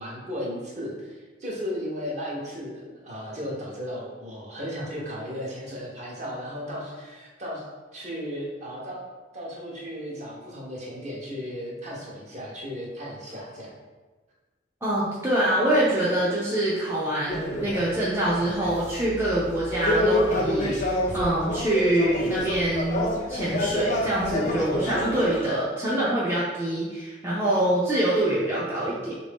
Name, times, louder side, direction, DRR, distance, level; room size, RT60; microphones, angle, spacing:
voice 1, 0.0-7.6 7.9-9.0 9.3-13.8, equal, 40° right, -4 dB, 0.9 m, -35 dB
voice 2, 14.8-29.1, right 1 dB, 15° right, -8 dB, 0.5 m, -25 dB
sound 1, 17.3-25.5, left 1 dB, 45° left, 0.5 m, -28 dB
3.5 x 2.6 x 3.4 m, 1.2 s
head